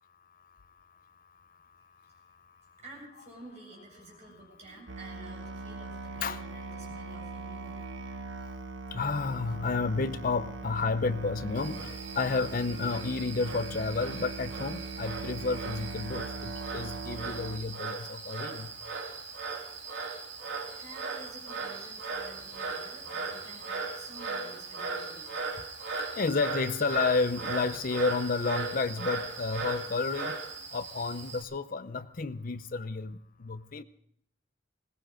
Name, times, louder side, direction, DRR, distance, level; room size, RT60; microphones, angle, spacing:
voice 1, 2.8-7.8 20.8-25.3, right 2 dB, 40° right, 7.9 m, -51 dB
Musical instrument, 4.9-17.6, right 3 dB, 90° right, 1.1 m, -41 dB
voice 2, 8.9-18.8 26.0-30.4 30.7-33.8, left 4 dB, 50° left, 0.6 m, -31 dB
Frog, 11.6-31.4, right 4 dB, 75° right, 3.2 m, -38 dB
21.0 x 17.5 x 3.8 m
head